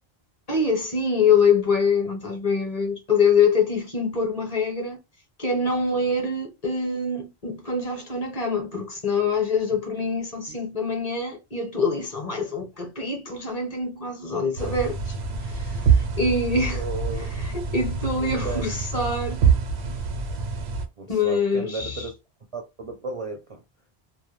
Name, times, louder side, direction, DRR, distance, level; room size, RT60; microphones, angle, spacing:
voice 1, 0.5-5.0 5.4-15.1 15.4-16.8 17.4-19.4 21.1-22.0, left 4 dB, 40° left, 0.7 m, -24 dB
sound 1, 14.6-20.9, right 6 dB, 85° right, 0.9 m, -25 dB
voice 2, 16.7-17.3 18.2-18.7 21.0-22.1 22.5-23.6, right 3 dB, 50° right, 0.4 m, -34 dB
2.2 x 2.1 x 3.0 m
omnidirectional pair, 1.1 m